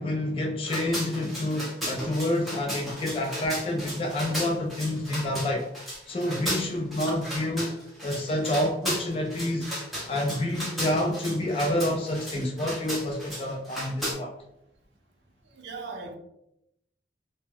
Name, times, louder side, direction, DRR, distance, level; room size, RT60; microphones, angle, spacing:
voice 1, 0.0-5.7 6.1-7.7 8.0-9.7 10.1-14.3, left 1 dB, 30° left, 1 dB, 0.3 m, -28 dB
sound 1, 0.6-14.1, equal, ahead, 0.7 m, -35 dB
voice 2, 15.5-16.2, right 4 dB, 80° right, 3 dB, 0.5 m, -38 dB
2.0 x 2.0 x 3.5 m, 0.80 s
head